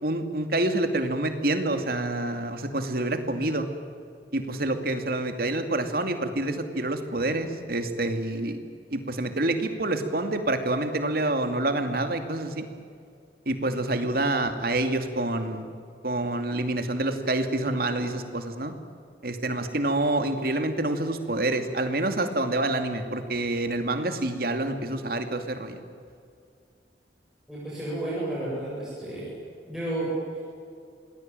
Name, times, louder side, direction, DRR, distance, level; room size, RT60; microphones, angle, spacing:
voice 1, 0.0-3.7 4.3-8.6 8.9-12.6 13.5-15.7 16.0-18.7 19.2-25.8, right 2 dB, 55° right, 7 dB, 2.6 m, -27 dB
voice 2, 27.5-29.3 29.6-30.1, right 1 dB, 5° right, -8 dB, 8.0 m, -32 dB
27.5 x 20.0 x 9.1 m, 2.3 s
head